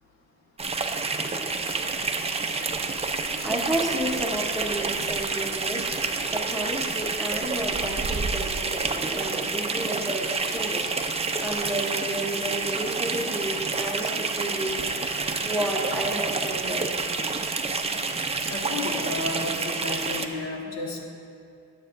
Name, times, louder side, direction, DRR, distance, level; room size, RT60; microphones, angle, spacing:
sound 1, 0.6-20.3, right 4 dB, 20° right, 0.5 m, -28 dB
voice 1, 3.4-5.9 6.3-10.9 11.4-14.8 15.4-17.0, right 1 dB, ahead, -1 dB, 0.9 m, -31 dB
voice 2, 18.5-21.1, left 2 dB, 60° left, -1 dB, 1.5 m, -32 dB
11.0 x 9.3 x 2.6 m, 2.5 s
cardioid pair, 90°, 30 cm